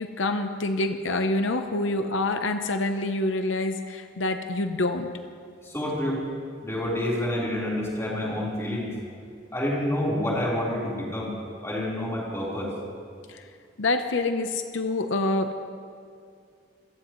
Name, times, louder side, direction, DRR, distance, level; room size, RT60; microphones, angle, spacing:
voice 1, 0.0-5.1 13.3-13.4 13.8-15.6, left 2 dB, 85° left, 7 dB, 0.8 m, -26 dB
voice 2, 5.6-6.2 6.6-9.0 9.5-11.3 11.6-12.7, left 1 dB, 15° left, -6 dB, 4.1 m, -28 dB
28.0 x 15.5 x 3.2 m, 2.4 s
head